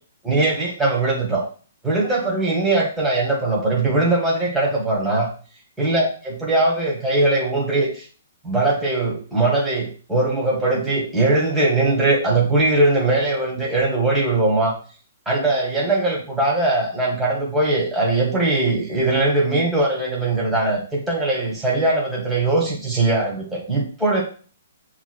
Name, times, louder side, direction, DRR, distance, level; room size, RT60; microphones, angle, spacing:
voice 1, 0.2-1.4 1.8-5.3 5.8-8.1 8.4-14.7 15.3-24.2, right 2 dB, 5° right, -4 dB, 1.6 m, -20 dB
6.9 x 3.2 x 2.3 m, 0.39 s
hypercardioid pair, 135°, 0 cm